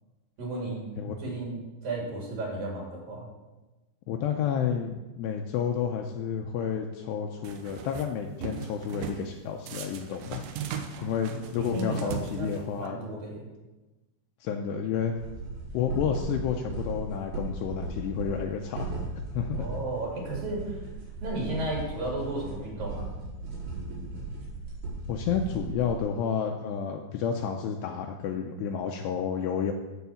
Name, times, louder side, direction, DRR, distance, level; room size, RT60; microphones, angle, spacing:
voice 1, 0.4-0.9 1.2-1.6 1.8-3.3 11.0-11.1 11.6-12.5 12.8-13.4 19.6-20.8 21.2-23.1, right 2 dB, 50° right, -2 dB, 3.9 m, -33 dB
voice 2, 4.1-10.4 11.0-13.0 14.4-15.2 15.7-18.9 19.3-19.7 25.1-29.7, left 7 dB, 85° left, 3 dB, 2.5 m, -30 dB
sound 1, 7.4-8.1 8.4-9.2 9.7-12.9, right 7 dB, 85° right, 3.4 m, -38 dB
sound 2, 15.2-26.0, right 2 dB, 70° right, 6.9 m, -37 dB
14.0 x 4.7 x 7.0 m, 1.1 s
omnidirectional pair, 5.4 m